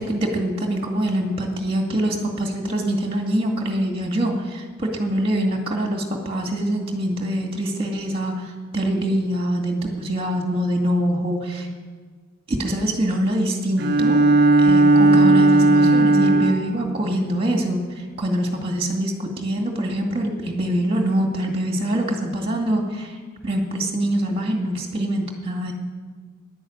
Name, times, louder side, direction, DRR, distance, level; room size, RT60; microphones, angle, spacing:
voice 1, 0.0-11.7 12.5-14.2 14.6-17.8 18.2-23.1 23.4-25.7, right 1 dB, 25° right, 2 dB, 2.2 m, -24 dB
Bowed string instrument, 13.8-16.8, right 2 dB, 45° right, 0.6 m, -15 dB
11.5 x 11.0 x 8.8 m, 1.5 s
head